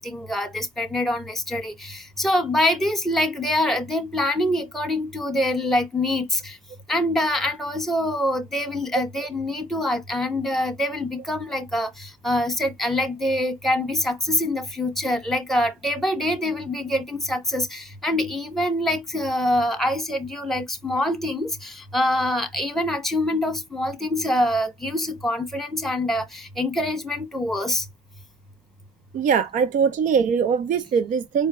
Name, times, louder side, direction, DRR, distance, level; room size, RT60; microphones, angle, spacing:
voice 1, 0.0-6.6 6.9-27.8, left 1 dB, ahead, 1.3 m, -25 dB
voice 2, 29.1-31.5, right 6 dB, 50° right, 0.5 m, -21 dB
4.4 x 2.1 x 3.8 m
cardioid pair, 110°, 17 cm